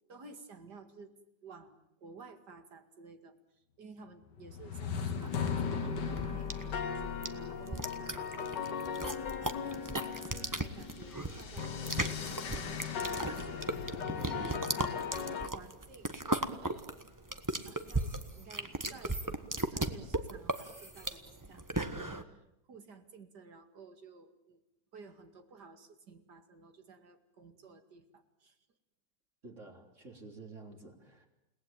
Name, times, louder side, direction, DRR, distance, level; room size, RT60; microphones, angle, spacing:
voice 1, 0.1-1.1 1.4-3.4 3.8-8.6 8.8-9.0 9.6-13.5 14.0-14.1 15.3-16.2 16.6-17.0 17.7-19.2 19.5-22.2 22.7-24.6 24.9-28.6, right 4 dB, 60° right, 8 dB, 2.8 m, -54 dB
sound 1, 4.4-15.5, left 6 dB, 70° left, 2.2 m, -37 dB
sound 2, 5.2-22.2, right 2 dB, 10° right, 1.2 m, -37 dB
voice 2, 14.0-14.6 29.4-31.3, right 2 dB, 40° right, 3 dB, 3.9 m, -50 dB
30.0 x 19.0 x 9.0 m, 0.84 s
omnidirectional pair, 2.0 m